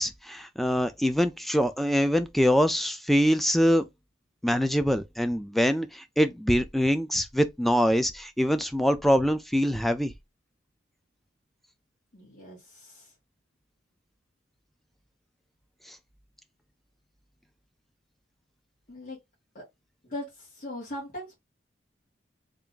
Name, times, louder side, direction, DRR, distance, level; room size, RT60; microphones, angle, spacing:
voice 1, 0.0-3.8 4.4-10.1, equal, ahead, 0.3 m, -24 dB
voice 2, 12.1-13.0 18.9-19.2 19.6-19.7 20.1-20.2 20.6-21.3, left 1 dB, 50° left, 1.8 m, -39 dB
3.4 x 2.5 x 3.8 m
head